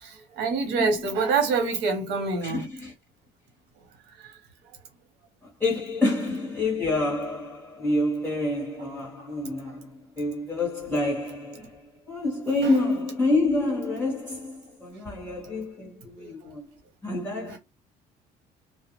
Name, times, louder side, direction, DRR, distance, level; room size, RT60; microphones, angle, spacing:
voice 1, 0.0-2.6 4.1-4.3 9.2-9.3 12.6-12.7 16.2-16.3, right 4 dB, 80° right, 1.1 m, -26 dB
voice 2, 2.4-2.9 5.6-16.6 17.0-17.6, left 2 dB, 10° left, 1.1 m, -28 dB
2.4 x 2.2 x 2.9 m
cardioid pair, 110°, 17 cm